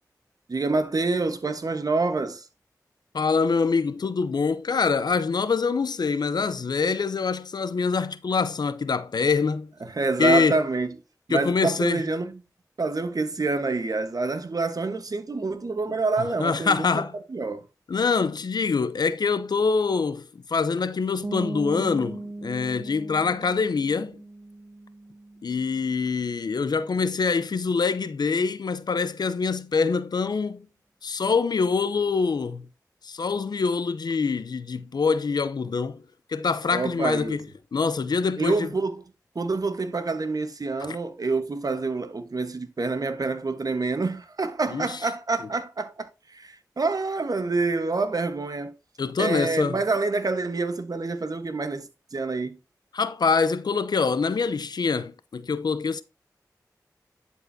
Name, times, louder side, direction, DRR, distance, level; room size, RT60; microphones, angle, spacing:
voice 1, 0.5-2.5 9.8-11.0 11.3-12.4 12.8-17.0 17.3-17.6 36.7-37.4 38.4-39.0 39.3-48.7 49.2-52.6, right 3 dB, 60° right, 1.2 m, -27 dB
voice 2, 3.1-9.7 10.2-10.6 11.3-12.0 16.4-17.1 17.9-24.2 25.4-30.7 31.0-32.7 33.0-36.0 36.3-37.4 37.7-38.7 40.8-41.0 44.7-44.9 49.0-49.8 52.9-56.0, left 5 dB, 75° left, 0.6 m, -25 dB
sound 1, 21.2-26.8, right 2 dB, 30° right, 0.6 m, -38 dB
11.0 x 4.6 x 2.7 m
cardioid pair, 40°, 7 cm